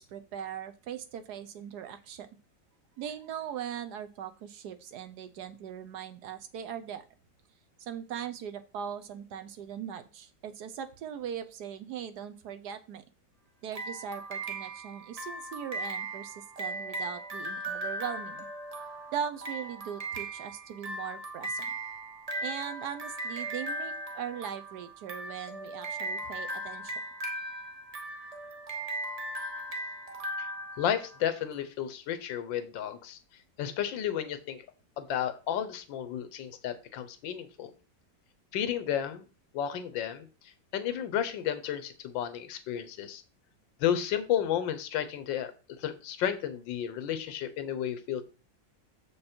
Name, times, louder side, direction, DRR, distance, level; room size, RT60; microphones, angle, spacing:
voice 1, 0.0-2.3 3.0-7.0 7.8-13.0 13.6-18.5 19.1-21.7 22.4-26.9, right 8 dB, 70° right, 9 dB, 1.1 m, -39 dB
sound 1, 13.7-31.4, right 1 dB, 25° right, 0.8 m, -38 dB
voice 2, 30.8-33.2 33.6-34.6 35.0-37.7 38.5-39.3 39.5-43.2 43.8-48.2, left 10 dB, 85° left, 12 dB, 1.5 m, -32 dB
6.9 x 5.2 x 4.3 m, 0.35 s
omnidirectional pair, 2.0 m